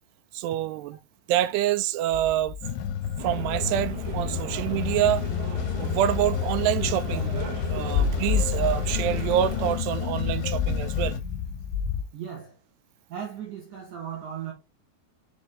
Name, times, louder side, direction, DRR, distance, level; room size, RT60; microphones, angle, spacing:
voice 1, 0.3-1.0 1.3-2.5 3.2-5.2 5.8-7.4 7.7-11.2, right 12 dB, 90° right, 2.8 m, -26 dB
sound 1, 2.1-12.0, left 7 dB, 65° left, 2.6 m, -32 dB
sound 2, 2.6-11.2, left 8 dB, 85° left, 2.8 m, -30 dB
sound 3, 3.2-9.8, right 8 dB, 75° right, 3.3 m, -39 dB
voice 2, 12.1-12.6 13.1-14.5, right 8 dB, 60° right, 2.9 m, -36 dB
7.1 x 5.1 x 3.4 m
omnidirectional pair, 4.7 m